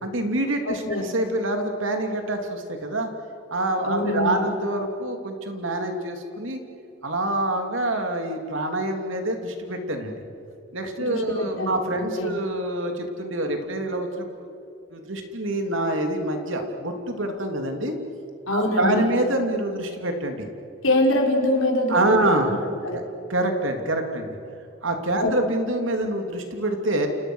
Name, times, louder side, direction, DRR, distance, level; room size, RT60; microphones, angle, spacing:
voice 1, 0.0-3.1 3.5-6.6 7.0-10.1 10.7-14.5 14.9-18.0 18.5-20.5 21.9-22.5 22.9-23.0 23.3-24.3 24.8-27.1, right 1 dB, 70° right, 4 dB, 3.0 m, -26 dB
voice 2, 0.7-1.1 3.8-4.5 11.0-11.8 12.2-12.4 18.5-19.1 20.8-22.3 22.8-23.0 25.2-25.3, left 1 dB, 75° left, 1 dB, 4.9 m, -24 dB
30.0 x 28.5 x 6.4 m, 2.7 s
head